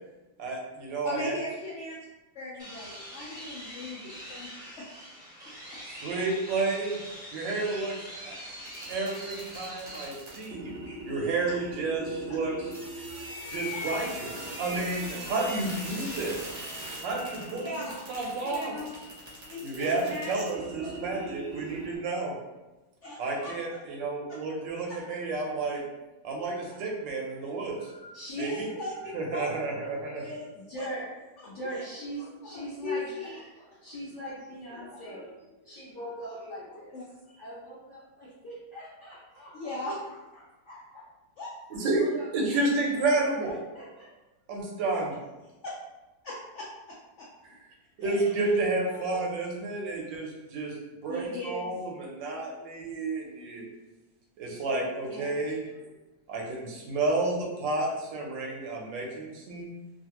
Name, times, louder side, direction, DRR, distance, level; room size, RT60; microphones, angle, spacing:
voice 1, 0.4-1.4 5.8-7.0 7.3-8.0 8.2-8.4 8.9-10.8 11.0-12.7 13.5-14.3 14.6-16.6 17.0-18.7 19.6-20.0 20.3-22.3 23.2-25.8 26.2-27.9 28.4-28.7 29.1-30.4 41.7-42.0 42.3-43.5 44.5-45.1 48.0-50.7 51.0-53.6 54.4-55.6 56.3-59.7, right 3 dB, 85° right, -1 dB, 1.4 m, -31 dB
voice 2, 1.0-2.0 2.3-5.1 5.4-5.8 10.8-11.0 11.5-11.7 13.7-14.1 15.1-15.2 17.5-18.0 18.4-18.9 19.5-20.3 20.8-20.9 23.0-23.5 24.3-24.4 24.9-25.0 28.4-28.9 29.3-29.6 30.1-30.5 30.8-30.9 31.7-31.8 32.4-33.4 34.7-35.0 36.9-37.0 39.5-40.0 41.4-41.5 46.2-47.3 48.0-48.3 48.9-49.2 51.1-51.6 55.0-55.3, left 2 dB, 80° left, -6 dB, 0.6 m, -39 dB
sound 1, 2.6-10.1, equal, 5° right, 0.6 m, -43 dB
sound 2, 8.6-21.9, right 1 dB, 40° right, 0.9 m, -40 dB
voice 3, 13.4-15.6 16.5-17.7 27.8-28.6 30.5-31.0 31.4-37.0 37.2-39.7 40.3-40.4 40.6-41.0 41.8-42.5 43.2-44.1 44.5-44.7, right 1 dB, 30° left, -11 dB, 1.4 m, -42 dB
3.2 x 2.4 x 2.9 m, 1.1 s
omnidirectional pair, 1.9 m